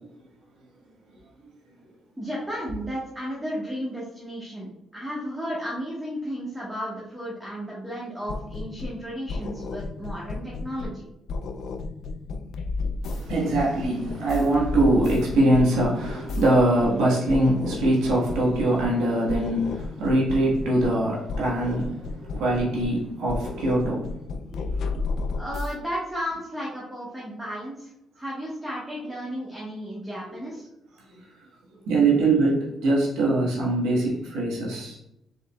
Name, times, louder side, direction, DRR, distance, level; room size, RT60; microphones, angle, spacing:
voice 1, 2.2-11.0 25.3-27.9 28.1-30.7, equal, 10° right, -6 dB, 1.5 m, -33 dB
sound 1, 8.3-9.0 9.3-11.0 11.3-17.0 17.3-19.0 19.3-21.0 21.3-23.0 23.3-25.7, left 3 dB, 70° left, 0.4 m, -33 dB
voice 2, 13.1-22.0 22.3-24.0 24.5-25.0 30.3-30.4 31.9-35.0, right 1 dB, 90° right, -5 dB, 1.5 m, -23 dB
5.1 x 4.0 x 2.4 m, 0.83 s
cardioid pair, 90°, 0 cm